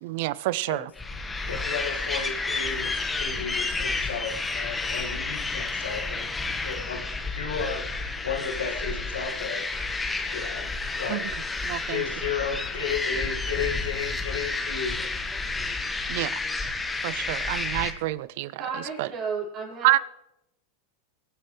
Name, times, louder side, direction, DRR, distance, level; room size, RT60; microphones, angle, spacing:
voice 1, 0.0-0.9 11.1-11.2 11.6-12.0 16.1-16.4 17.0-19.1 19.8-20.0, right 18 dB, 65° right, 0.5 m, -27 dB
sound 1, 1.0-17.9, left 3 dB, 15° left, 1.4 m, -31 dB
voice 2, 1.5-6.3 6.6-9.7 10.3-10.7 10.9-11.4 11.7-15.0, left 6 dB, 90° left, 2.1 m, -33 dB
voice 3, 18.6-20.0, right 5 dB, 45° right, 5.5 m, -33 dB
23.0 x 8.9 x 3.3 m
hypercardioid pair, 105°, 0 cm